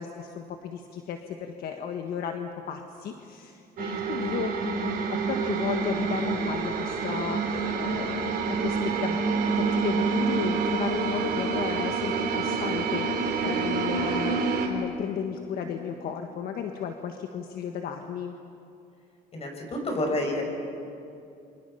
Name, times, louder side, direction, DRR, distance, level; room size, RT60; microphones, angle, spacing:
voice 1, 0.0-9.2 9.5-18.3, left 7 dB, 65° left, 4 dB, 1.5 m, -34 dB
sound 1, 3.8-14.7, right 5 dB, 60° right, 4.1 m, -27 dB
voice 2, 19.3-20.4, left 1 dB, 35° left, 2 dB, 6.1 m, -29 dB
28.5 x 26.0 x 5.7 m, 2.6 s
cardioid pair, 110°, 17 cm